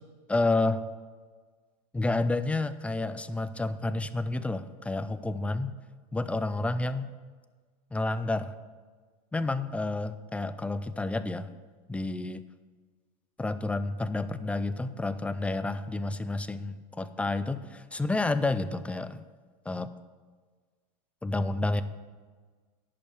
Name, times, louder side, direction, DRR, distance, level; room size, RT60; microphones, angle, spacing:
voice 1, 0.3-0.8 1.9-5.7 6.1-7.1 7.9-8.5 9.3-11.5 11.9-12.4 13.4-19.2 19.7-19.9 21.2-21.8, left 2 dB, 5° left, 13 dB, 0.4 m, -30 dB
11.0 x 5.4 x 7.6 m, 1.5 s
supercardioid pair, 125°, 20 cm